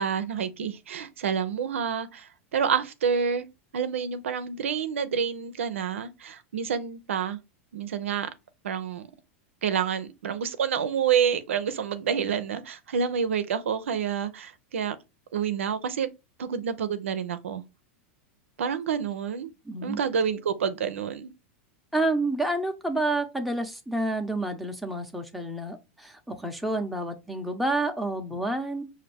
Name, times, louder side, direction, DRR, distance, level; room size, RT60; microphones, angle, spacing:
voice 1, 0.0-3.5 3.7-7.4 7.7-8.3 8.6-9.1 9.6-15.0 15.3-16.1 16.4-17.6 18.6-19.5 19.8-21.3, right 7 dB, 85° right, 0.5 m, -28 dB
voice 2, 19.6-20.0 21.9-28.8, right 2 dB, ahead, 0.8 m, -29 dB
5.1 x 2.6 x 3.4 m
hypercardioid pair, 110°, 7 cm